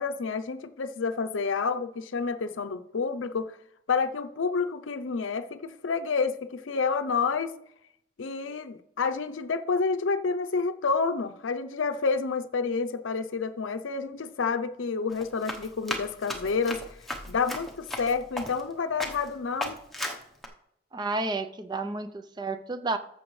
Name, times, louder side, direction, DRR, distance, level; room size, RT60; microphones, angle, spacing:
voice 1, 0.0-3.6 3.9-7.5 8.2-16.8 17.3-19.8, left 4 dB, 85° left, 0.6 m, -29 dB
Run, 15.1-18.7 19.0-19.3 19.6-20.5, left 1 dB, ahead, 0.9 m, -36 dB
voice 2, 20.9-23.0, right 3 dB, 20° right, 0.5 m, -31 dB
14.0 x 7.0 x 3.2 m
head